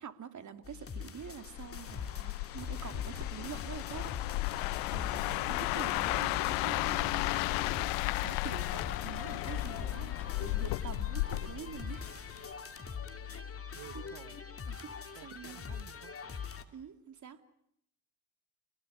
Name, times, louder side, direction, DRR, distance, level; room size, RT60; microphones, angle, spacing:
voice 1, 0.0-4.2 4.9-7.3 8.1-12.4 13.2-13.4 13.7-14.0 14.7-15.6 16.7-17.4, right 7 dB, 35° right, 8 dB, 2.9 m, -46 dB
sound 1, 0.6-16.6, left 6 dB, 25° left, 2.7 m, -43 dB
sound 2, 1.4-12.5 12.9-13.2, left 21 dB, 75° left, 1.0 m, -34 dB
voice 2, 13.7-14.4 15.1-16.1, right 15 dB, 65° right, 11 dB, 1.5 m, -52 dB
30.0 x 17.5 x 9.9 m, 0.76 s
supercardioid pair, 85°, 50 cm